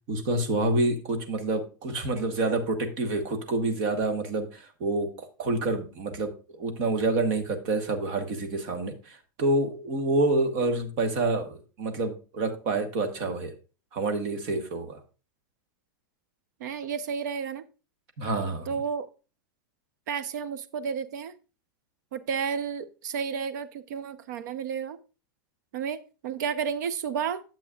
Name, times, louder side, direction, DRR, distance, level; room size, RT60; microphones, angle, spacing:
voice 1, 0.1-13.5 13.9-15.0 18.2-18.7, right 2 dB, 35° right, 6 dB, 1.3 m, -28 dB
voice 2, 16.6-17.6 18.7-19.1 20.1-21.3 22.1-25.0 25.7-27.4, right 6 dB, 60° right, 14 dB, 0.7 m, -32 dB
10.0 x 7.5 x 2.4 m, 0.33 s
supercardioid pair, 175°, 11 cm